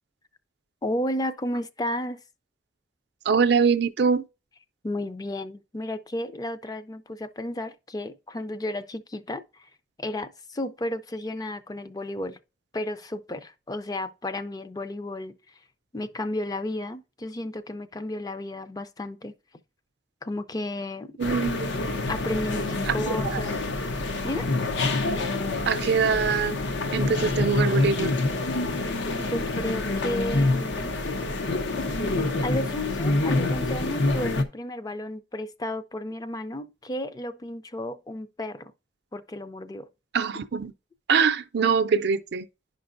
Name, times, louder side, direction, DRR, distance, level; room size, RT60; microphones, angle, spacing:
voice 1, 0.8-2.2 4.8-9.7 10.0-12.4 12.7-15.4 15.9-19.3 20.2-21.2 22.1-23.6 24.2-24.5 29.2-30.9 32.4-38.7 39.1-39.9, left 1 dB, 20° left, 0.4 m, -33 dB
voice 2, 3.3-4.2 21.2-21.7 22.9-23.0 23.2-23.4 25.7-26.6 26.9-28.1 40.1-40.7 41.1-42.5, right 5 dB, 65° right, 0.5 m, -23 dB
sound 1, 21.2-34.4, left 2 dB, 80° left, 0.8 m, -26 dB
11.0 x 5.2 x 2.5 m
head